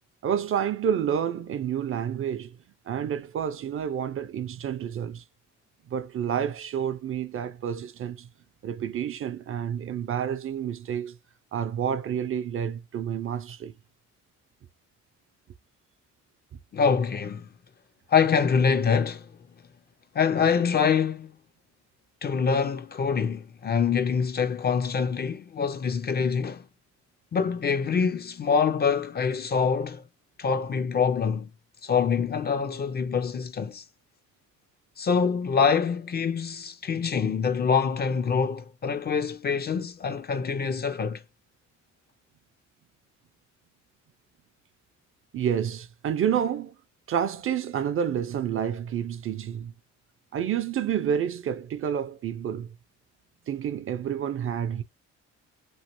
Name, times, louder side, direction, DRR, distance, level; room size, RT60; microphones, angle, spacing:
voice 1, 0.2-2.6 2.9-5.2 5.9-8.3 8.6-11.2 11.5-13.7 45.3-46.7 47.1-49.7 50.3-52.7 53.5-54.8, right 8 dB, 45° right, 0.4 m, -29 dB
voice 2, 16.7-17.5 18.1-19.3 20.1-21.3 22.2-26.6 27.3-30.0 30.4-31.5 31.8-33.8 35.0-41.2, left 6 dB, 35° left, 0.4 m, -25 dB
3.1 x 2.7 x 2.9 m
cardioid pair, 90°, 30 cm